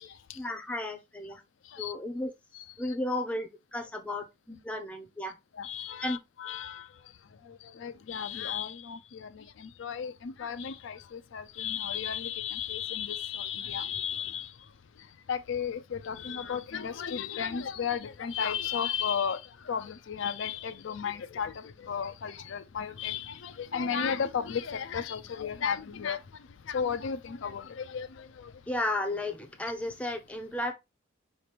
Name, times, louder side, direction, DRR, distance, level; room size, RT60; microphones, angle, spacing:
voice 1, 0.3-1.4 1.8-2.3 2.8-5.4 6.0-6.2 28.7-30.7, left 1 dB, 5° left, 0.6 m, -33 dB
voice 2, 5.6-6.8 7.8-9.3 9.8-11.0 11.3-14.5 15.3-19.4 19.7-21.5 21.9-26.2 26.7-28.1, left 7 dB, 65° left, 0.4 m, -33 dB
5.0 x 2.9 x 3.3 m
head